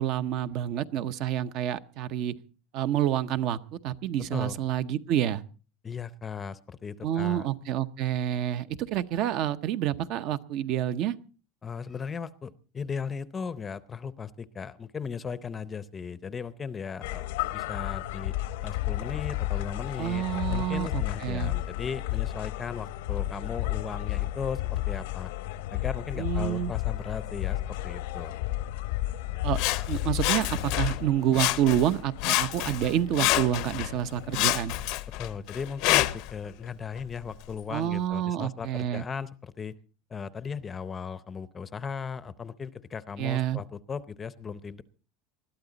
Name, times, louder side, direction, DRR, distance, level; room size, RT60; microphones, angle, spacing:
voice 1, 0.0-2.3 2.7-5.4 7.0-11.1 20.0-21.5 26.2-26.7 29.4-29.6 29.9-34.8 37.7-39.0 43.2-43.6, right 11 dB, 50° right, 13 dB, 0.8 m, -28 dB
voice 2, 5.8-7.5 11.6-17.3 17.5-18.3 18.6-25.3 25.7-28.3 35.2-39.7 40.1-44.8, left 6 dB, 20° left, 15 dB, 0.6 m, -37 dB
sound 1, 17.0-34.6, left 15 dB, 85° left, 0.9 m, -33 dB
Sawing, 29.5-31.0 31.3-31.9 32.2-33.9 34.3-36.3 37.0-37.1, left 18 dB, 55° left, 0.7 m, -28 dB
20.5 x 13.0 x 4.0 m, 0.37 s
supercardioid pair, 155°, 0 cm